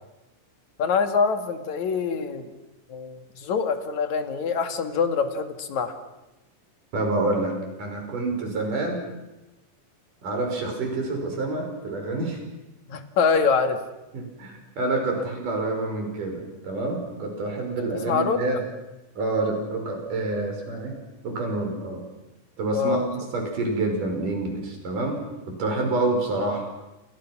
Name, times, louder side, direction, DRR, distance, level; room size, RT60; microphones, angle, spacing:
voice 1, 0.8-2.5 2.9-5.9 12.9-13.8 15.2-15.3 18.0-18.4 22.7-23.1, left 5 dB, 65° left, 7 dB, 3.3 m, -24 dB
voice 2, 6.9-9.1 10.2-12.4 14.1-18.6 19.2-21.0 21.2-22.0 22.6-26.6, right 2 dB, 85° right, 3 dB, 7.4 m, -27 dB
29.5 x 29.0 x 6.2 m, 1.0 s
omnidirectional pair, 3.6 m